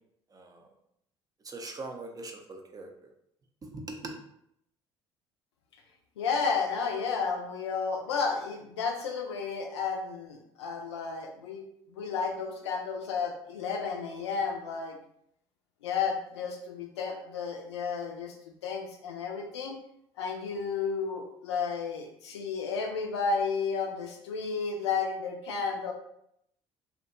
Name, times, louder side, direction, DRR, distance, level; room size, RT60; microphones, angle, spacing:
voice 1, 1.4-3.1 3.7-4.1, right 2 dB, 25° right, 2 dB, 0.5 m, -41 dB
voice 2, 6.2-11.6 11.9-15.0 15.8-18.3 18.6-19.8 20.2-25.9, left 5 dB, 75° left, 3 dB, 0.4 m, -32 dB
2.7 x 2.1 x 2.5 m, 0.74 s
figure-of-eight pair, 55°, 15 cm